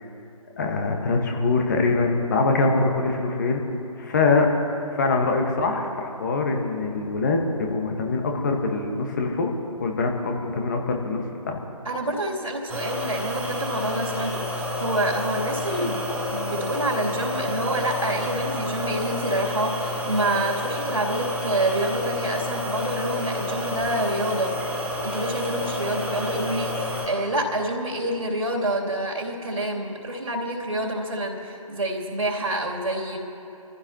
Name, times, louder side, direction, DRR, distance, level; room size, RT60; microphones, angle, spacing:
voice 1, 0.6-3.6 4.0-4.5 4.9-11.6, left 3 dB, 30° left, 2 dB, 1.5 m, -24 dB
voice 2, 11.8-24.5 25.0-33.2, right 1 dB, 65° right, -2 dB, 3.1 m, -27 dB
sound 1, 12.7-27.1, left 1 dB, 5° right, 2.7 m, -29 dB
26.0 x 15.0 x 3.0 m, 2.9 s
figure-of-eight pair, 145°, 19 cm